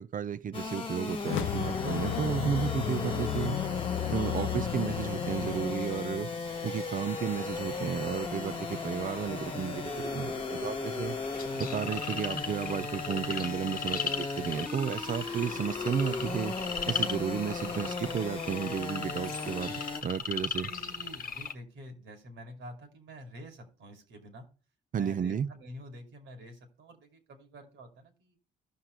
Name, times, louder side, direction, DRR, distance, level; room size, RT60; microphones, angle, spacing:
voice 1, 0.0-3.6 4.1-11.2 11.5-16.6 16.9-20.7 24.9-25.5, right 8 dB, 40° right, 0.7 m, -33 dB
sound 1, 0.5-20.0, left 4 dB, 25° left, 1.6 m, -36 dB
sound 2, 1.2-6.6, left 13 dB, 75° left, 0.6 m, -34 dB
sound 3, 11.0-21.5, left 6 dB, 45° left, 1.1 m, -38 dB
voice 2, 20.7-24.5 25.0-28.4, equal, 70° right, 2.7 m, -48 dB
16.0 x 5.8 x 3.2 m
supercardioid pair, 70°, 20 cm